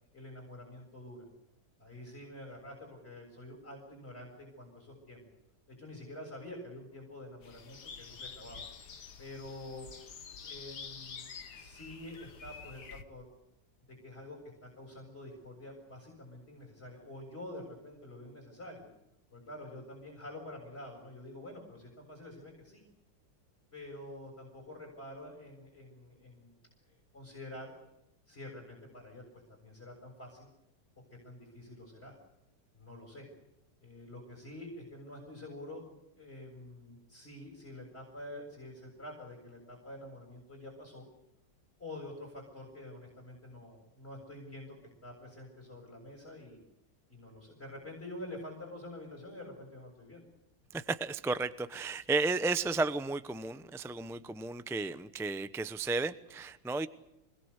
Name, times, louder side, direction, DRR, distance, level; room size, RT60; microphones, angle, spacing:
voice 1, 0.1-1.3 1.8-5.2 5.8-8.7 9.2-9.9 10.4-11.3 11.6-13.3 13.9-18.9 19.3-22.8 23.7-26.6 26.9-27.7 28.3-30.5 31.2-32.2 32.7-33.3 33.8-35.8 36.2-41.1 41.8-44.8 45.0-46.6 47.1-50.2, left 1 dB, 35° left, 1 dB, 7.2 m, -47 dB
sound 1, 7.4-13.0, left 6 dB, 65° left, 2.0 m, -48 dB
voice 2, 50.7-56.9, right 3 dB, 5° right, 12 dB, 0.5 m, -33 dB
26.5 x 21.0 x 8.2 m, 0.86 s
omnidirectional pair, 1.9 m